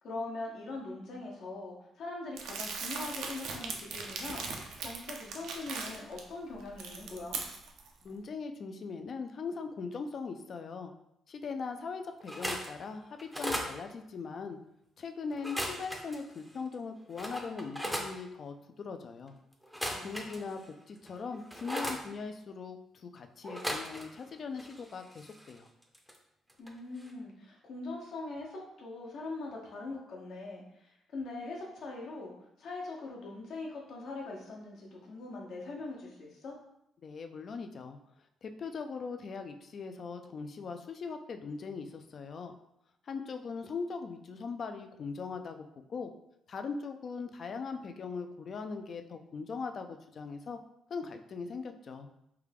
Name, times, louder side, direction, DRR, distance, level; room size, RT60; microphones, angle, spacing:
voice 1, 0.0-7.4 19.9-20.5 26.6-32.3 32.6-36.6, left 2 dB, 70° left, -2 dB, 1.0 m, -42 dB
Crumpling crinkling, 2.4-6.2 6.6-7.9, right 4 dB, 85° right, 0.5 m, -39 dB
voice 2, 8.0-10.9 11.3-14.6 15.0-19.3 20.0-20.6 20.9-25.7 37.0-38.0 38.4-42.5 43.1-45.6 45.9-46.1 46.5-50.6 50.9-52.1, left 5 dB, 50° left, 7 dB, 0.3 m, -40 dB
sound 1, 12.2-12.7 13.2-13.7 15.3-16.2 16.7-16.8 17.2-18.1 19.6-20.6 21.1-22.0 23.4-24.3 24.5-26.2 26.5-26.7 27.0-27.1, equal, ahead, 0.5 m, -37 dB
3.4 x 2.3 x 3.4 m, 0.79 s
cardioid pair, 90°, 0 cm